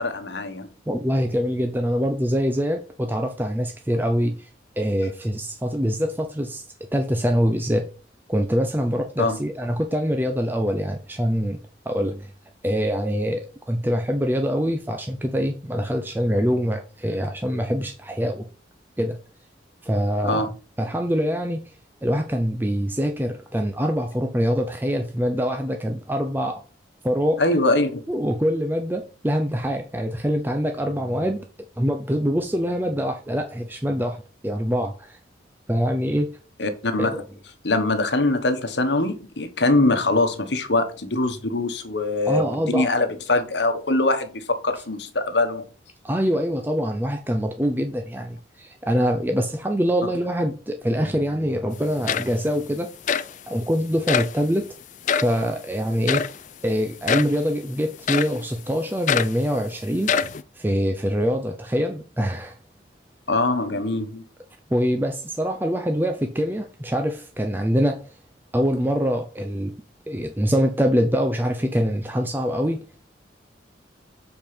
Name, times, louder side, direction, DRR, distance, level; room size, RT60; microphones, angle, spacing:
voice 1, 0.0-0.7 9.2-9.4 20.2-20.5 27.4-28.0 36.6-37.2 37.6-45.6 63.3-64.2, left 2 dB, 70° left, 1.3 m, -23 dB
voice 2, 0.9-4.5 4.8-7.9 8.3-11.6 11.9-12.3 12.6-18.5 19.0-19.2 19.8-20.5 20.8-21.7 22.0-26.6 27.0-27.4 28.1-31.5 31.8-35.2 35.7-36.3 37.0-37.2 42.2-42.9 46.0-52.9 53.5-54.7 55.2-56.2 56.6-60.1 60.5-62.5 64.7-68.1 68.5-69.7 70.1-73.0, equal, 10° right, 0.6 m, -24 dB
sound 1, 51.7-51.8 52.1-52.6 53.1-53.3 54.1-54.4 55.1-55.4 56.1-56.4 57.1-57.4 58.1-58.4 59.1-59.4 60.0-60.4, left 7 dB, 40° left, 0.4 m, -24 dB
7.6 x 4.6 x 5.1 m
head